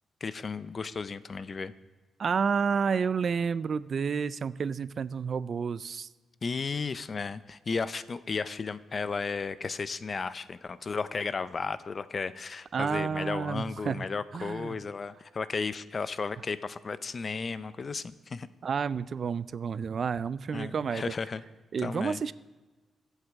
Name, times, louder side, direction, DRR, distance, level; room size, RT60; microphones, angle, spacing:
voice 1, 0.2-1.7 6.4-18.5 20.5-21.4 21.8-22.2, left 4 dB, 35° left, 14 dB, 0.5 m, -34 dB
voice 2, 2.2-6.1 12.7-14.0 14.3-14.8 18.6-21.1 21.7-22.3, right 6 dB, 50° right, 17 dB, 0.3 m, -30 dB
22.5 x 8.1 x 3.5 m, 1.2 s
cardioid pair, 125°, 0 cm